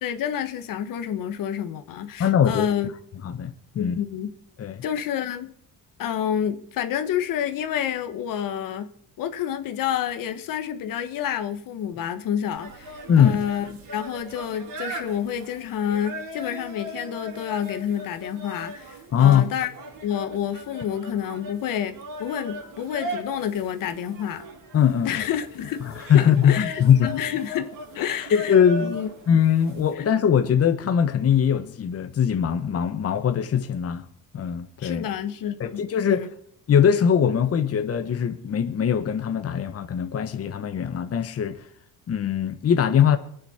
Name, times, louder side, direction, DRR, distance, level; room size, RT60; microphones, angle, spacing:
voice 1, 0.0-2.9 3.7-4.3 4.8-5.5 6.0-8.9 9.2-13.6 13.9-19.7 20.0-24.4 25.0-25.8 26.1-29.1 29.9-30.1 34.8-36.3, left 9 dB, 70° left, 1.5 m, -29 dB
voice 2, 2.2-2.7 3.2-4.0 4.6-4.8 13.1-13.4 19.1-19.4 24.7-25.2 25.8-27.1 28.3-29.0 29.3-34.1 34.3-35.1 35.6-36.2 36.7-41.7 42.1-43.2, left 8 dB, 45° left, 1.2 m, -21 dB
sound 1, 12.6-29.9, equal, 75° right, 5.5 m, -38 dB
23.0 x 9.5 x 4.4 m
cardioid pair, 90°, 34 cm